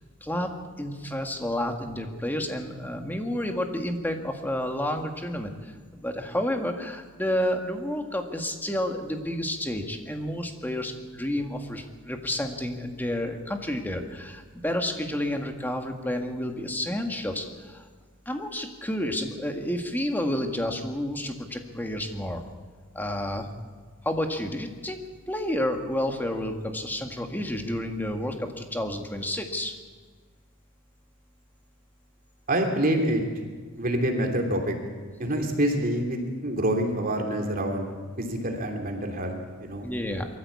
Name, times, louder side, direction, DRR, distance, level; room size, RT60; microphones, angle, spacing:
voice 1, 0.2-0.5 0.8-17.9 18.3-22.4 22.9-23.5 24.0-25.0 25.3-29.7 39.8-40.3, left 1 dB, 10° left, 4 dB, 1.8 m, -30 dB
voice 2, 32.5-33.2 33.8-34.8 35.2-39.9, right 1 dB, 40° right, 2 dB, 3.0 m, -27 dB
23.0 x 14.5 x 8.5 m, 1.5 s
head